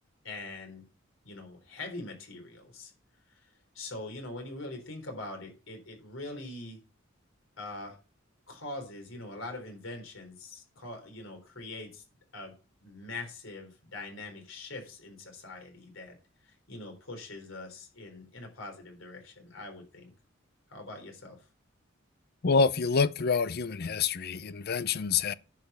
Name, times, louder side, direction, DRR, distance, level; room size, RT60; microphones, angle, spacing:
voice 1, 0.2-0.8 1.2-2.9 3.3-6.8 7.6-8.0 8.5-12.0 12.3-12.5 12.8-16.1 16.4-20.1 20.7-21.5, left 2 dB, 85° left, 3.9 m, -43 dB
voice 2, 22.4-25.3, left 5 dB, 50° left, 0.6 m, -27 dB
10.5 x 5.1 x 6.8 m
head